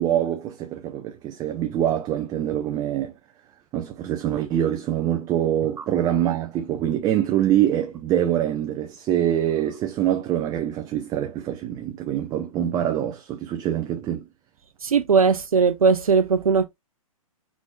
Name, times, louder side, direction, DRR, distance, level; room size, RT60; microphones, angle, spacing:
voice 1, 0.0-3.1 3.7-14.2, right 11 dB, 20° right, 0.5 m, -24 dB
voice 2, 14.8-16.7, right 5 dB, 80° right, 0.6 m, -19 dB
4.7 x 4.1 x 2.3 m
figure-of-eight pair, 120°, 18 cm